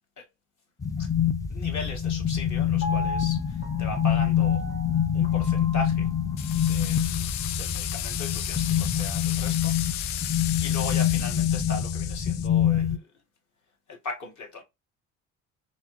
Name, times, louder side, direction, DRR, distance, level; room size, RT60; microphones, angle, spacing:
sound 1, 0.8-13.0, left 9 dB, 10° left, 0.3 m, -26 dB
voice 1, 1.5-4.6 5.1-6.1 6.5-10.0 10.6-13.1 13.9-14.6, left 2 dB, 45° left, 1.8 m, -38 dB
Piano, 2.8-6.9 7.4-7.5, equal, 30° left, 1.3 m, -38 dB
sound 2, 6.4-12.5, left 13 dB, 70° left, 0.5 m, -34 dB
4.0 x 2.8 x 3.0 m
hypercardioid pair, 60°, 41 cm